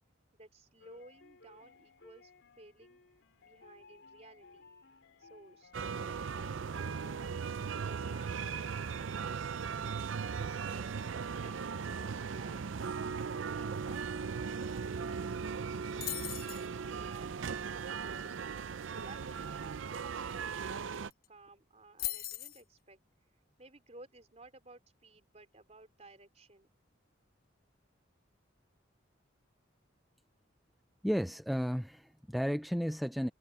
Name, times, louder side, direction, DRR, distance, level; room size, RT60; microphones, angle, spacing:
voice 1, 0.3-3.0 3.4-4.6 5.2-9.3 9.8-12.6 13.3-18.4 18.9-23.0 23.6-26.7, right 2 dB, 35° right, 3.9 m, -57 dB
sound 1, 0.8-15.3, left 3 dB, 70° left, 3.6 m, -60 dB
sound 2, 5.7-21.1, right 6 dB, 85° right, 0.5 m, -38 dB
sound 3, 16.0-16.7 20.6-20.7 20.9-21.3 22.0-22.6, left 14 dB, 50° left, 1.2 m, -38 dB
voice 2, 31.0-33.3, equal, ahead, 0.3 m, -33 dB
head